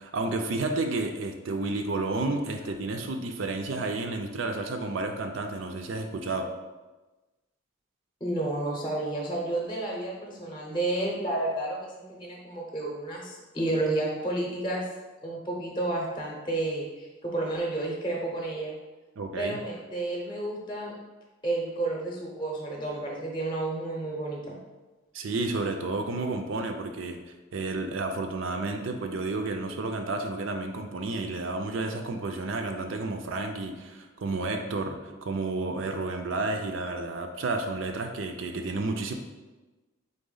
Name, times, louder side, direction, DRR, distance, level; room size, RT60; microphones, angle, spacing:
voice 1, 0.0-6.5 19.2-19.6 25.1-27.2 27.5-39.1, right 3 dB, 70° right, 5 dB, 0.5 m, -31 dB
voice 2, 8.2-14.8 15.2-18.7 19.4-20.9 21.4-24.6, right 2 dB, 25° left, -1 dB, 0.7 m, -31 dB
4.0 x 3.5 x 3.8 m, 1.2 s
head